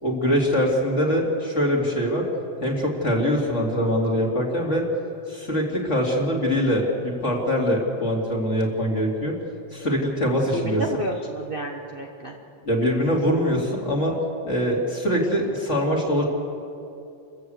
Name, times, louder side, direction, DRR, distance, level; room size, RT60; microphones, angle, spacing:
voice 1, 0.0-2.3 2.6-4.8 5.3-9.4 9.7-10.8 12.6-14.1 14.4-16.2, equal, 25° left, -1 dB, 3.2 m, -23 dB
voice 2, 10.5-12.4, right 1 dB, 50° right, 0 dB, 0.6 m, -31 dB
29.0 x 15.0 x 8.1 m, 2.8 s
omnidirectional pair, 3.4 m